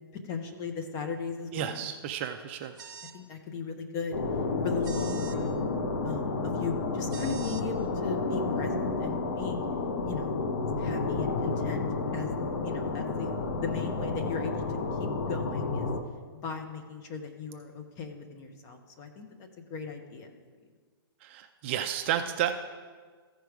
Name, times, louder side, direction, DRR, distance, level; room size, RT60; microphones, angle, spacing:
voice 1, 0.2-1.9 3.1-4.2 4.6-5.6 6.0-9.6 10.0-10.3 10.8-11.8 12.1-12.3 12.6-13.3 13.6-15.9 16.4-20.3, left 5 dB, 25° left, 5 dB, 0.9 m, -37 dB
voice 2, 1.5-2.7 21.2-22.5, right 10 dB, 30° right, 6 dB, 0.4 m, -31 dB
sound 1, 2.8-3.2 4.8-5.4 7.1-7.6, right 6 dB, 50° right, 0.8 m, -45 dB
sound 2, 4.1-16.0, left 3 dB, 55° left, 0.9 m, -31 dB
14.5 x 5.0 x 4.7 m, 1.5 s
hypercardioid pair, 155°, 13 cm